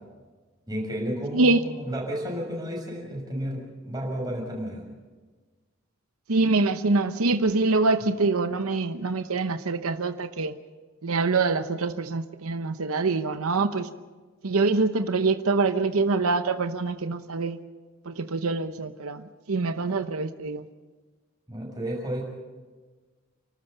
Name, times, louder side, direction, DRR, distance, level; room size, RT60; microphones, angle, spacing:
voice 1, 0.7-4.8 21.5-22.3, equal, 20° right, -1 dB, 6.4 m, -32 dB
voice 2, 6.3-10.5 11.0-13.9 14.4-17.6 18.1-20.7, right 3 dB, 90° right, 10 dB, 0.9 m, -25 dB
30.0 x 13.0 x 6.8 m, 1.3 s
head